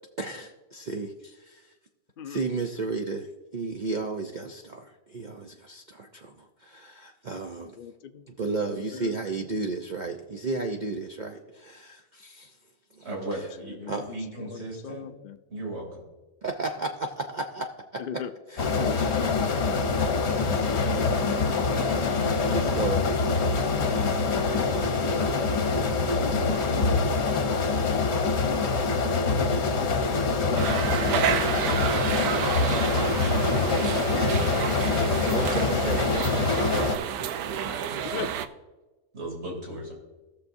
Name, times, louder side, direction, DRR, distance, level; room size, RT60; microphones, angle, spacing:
voice 1, 0.2-1.7 2.2-7.8 8.3-12.6 12.9-13.5 13.9-14.1 16.4-18.0 18.5-18.6 22.4-23.2 34.1-36.5, right 3 dB, 65° right, 3 dB, 0.4 m, -34 dB
voice 2, 7.8-9.2 13.6-14.2 14.4-15.4 18.0-18.3 18.8-19.4 38.0-38.4, left 8 dB, 80° left, 9 dB, 0.4 m, -38 dB
voice 3, 13.0-15.1 15.5-16.0 37.6-38.3 39.1-39.9, right 1 dB, 45° right, -2 dB, 3.1 m, -37 dB
sound 1, 18.6-37.0, left 4 dB, 50° left, 1.1 m, -25 dB
sound 2, 30.6-38.5, right 9 dB, 85° right, 1.1 m, -30 dB
17.0 x 6.7 x 2.6 m, 1.1 s
omnidirectional pair, 1.5 m